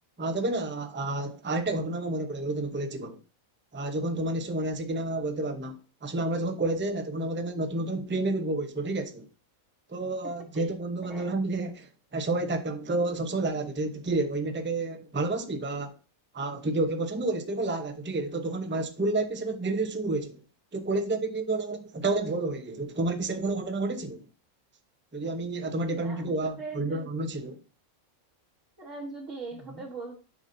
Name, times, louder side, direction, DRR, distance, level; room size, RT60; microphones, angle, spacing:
voice 1, 0.2-3.2 3.7-9.3 9.9-15.9 16.3-20.4 20.7-24.3 25.1-27.6, right 2 dB, 10° right, 0.6 m, -30 dB
voice 2, 10.2-10.7 11.1-11.3 25.9-27.1 28.8-30.2, right 3 dB, 60° right, 1.7 m, -41 dB
8.9 x 5.9 x 2.7 m
omnidirectional pair, 1.5 m